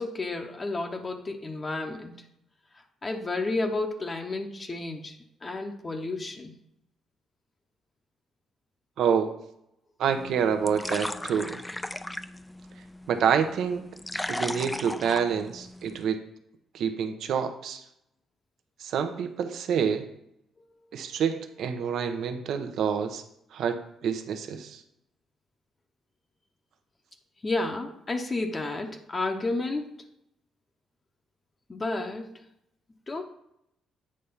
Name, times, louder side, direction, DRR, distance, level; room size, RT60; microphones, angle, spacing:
voice 1, 0.0-2.1 3.0-5.2 5.4-6.5 27.4-29.9 31.7-32.3 33.1-33.2, left 2 dB, 30° left, 4 dB, 0.8 m, -31 dB
voice 2, 9.0-9.3 10.0-11.6 13.1-13.8 14.3-16.2 16.7-17.8 18.8-20.1 20.9-23.2 23.5-24.8, right 7 dB, 75° right, 8 dB, 0.8 m, -27 dB
sound 1, 10.1-16.1, left 1 dB, 10° left, 0.4 m, -37 dB
8.6 x 3.3 x 5.6 m, 0.78 s
cardioid pair, 90°, 0 cm